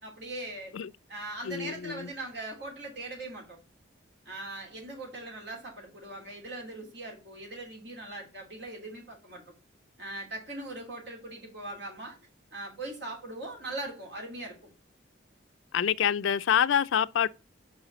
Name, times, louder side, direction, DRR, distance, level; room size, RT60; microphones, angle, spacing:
voice 1, 0.0-0.8 1.1-3.6 4.2-9.5 10.0-12.2 12.5-14.7, right 2 dB, 60° right, 3.1 m, -40 dB
voice 2, 1.4-2.1 15.7-17.3, left 8 dB, 85° left, 0.4 m, -26 dB
5.6 x 4.9 x 3.9 m
head